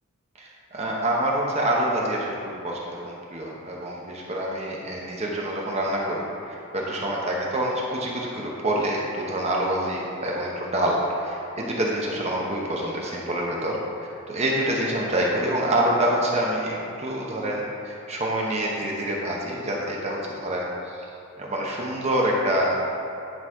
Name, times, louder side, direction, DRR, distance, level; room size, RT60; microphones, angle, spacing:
voice 1, 0.4-13.8 14.3-21.1 21.4-22.8, right 1 dB, 30° right, -3 dB, 0.9 m, -26 dB
10.5 x 4.0 x 4.8 m, 2.5 s
head